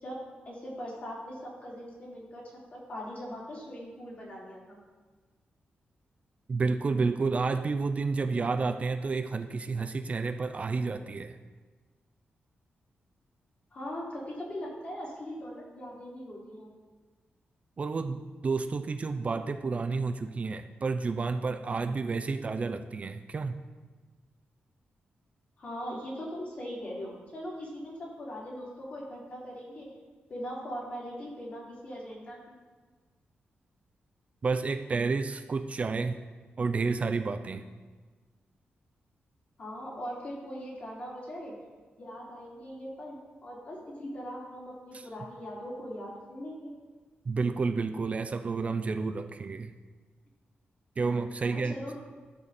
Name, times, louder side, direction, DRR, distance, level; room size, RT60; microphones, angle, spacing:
voice 1, 0.0-4.8 13.7-16.7 25.6-29.9 30.3-32.5 39.6-41.6 42.0-46.7 51.4-52.0, equal, 45° left, -6 dB, 3.6 m, -40 dB
voice 2, 6.5-11.3 17.8-23.6 34.4-36.2 36.6-37.6 47.3-49.7 51.0-51.7, right 4 dB, 35° right, 7 dB, 0.5 m, -30 dB
12.5 x 6.7 x 4.2 m, 1.4 s
wide cardioid pair, 135°, 4 cm